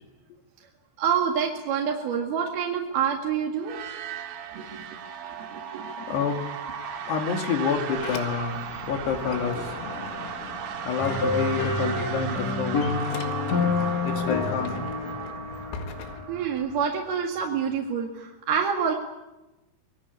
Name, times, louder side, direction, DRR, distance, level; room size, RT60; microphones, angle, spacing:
voice 1, 1.0-3.8 4.5-4.9 5.4-5.9 16.3-18.9, right 7 dB, 60° right, 1 dB, 3.5 m, -27 dB
sound 1, 3.6-17.3, right 8 dB, 75° right, 4.6 m, -36 dB
voice 2, 6.0-6.5 7.1-9.7 10.8-12.8 14.0-14.9, left 6 dB, 60° left, 5 dB, 4.1 m, -28 dB
Sliding door, 7.7-11.9 12.2-16.9, left 6 dB, 85° left, 4.4 m, -40 dB
sound 2, 11.0-16.6, left 4 dB, 40° left, 3.1 m, -28 dB
25.5 x 20.5 x 9.8 m, 1.0 s
omnidirectional pair, 5.7 m